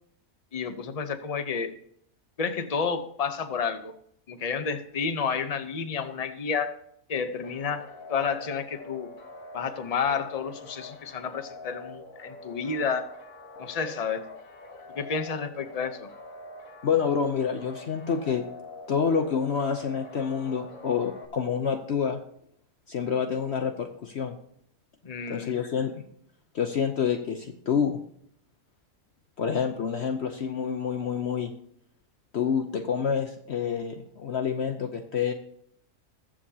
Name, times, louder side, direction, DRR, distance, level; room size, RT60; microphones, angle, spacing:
voice 1, 0.5-1.7 2.4-3.9 4.3-6.8 7.1-9.1 9.5-13.1 13.6-14.2 14.9-16.1 25.0-25.6, left 6 dB, 35° left, 10 dB, 0.8 m, -30 dB
sound 1, 7.4-21.3, left 2 dB, 75° left, 1.7 m, -45 dB
voice 2, 16.8-18.4 18.9-22.2 22.9-24.4 25.3-26.0 26.5-28.0 29.4-31.5 32.3-35.3, left 7 dB, 55° left, 6 dB, 1.0 m, -28 dB
21.0 x 7.4 x 2.8 m, 0.69 s
omnidirectional pair, 1.4 m